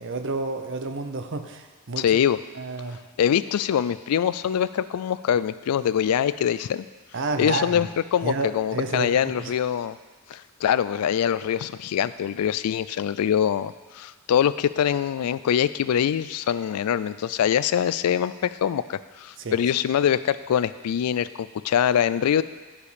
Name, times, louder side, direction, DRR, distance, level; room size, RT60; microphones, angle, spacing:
voice 1, 0.0-2.2 2.5-3.0 7.1-7.9 8.2-9.5 19.4-19.6, right 3 dB, 55° right, 7 dB, 0.7 m, -30 dB
voice 2, 2.0-2.4 3.2-6.9 7.4-10.0 10.3-22.4, left 9 dB, 90° left, 15 dB, 0.3 m, -24 dB
11.0 x 5.0 x 5.0 m, 1.3 s
head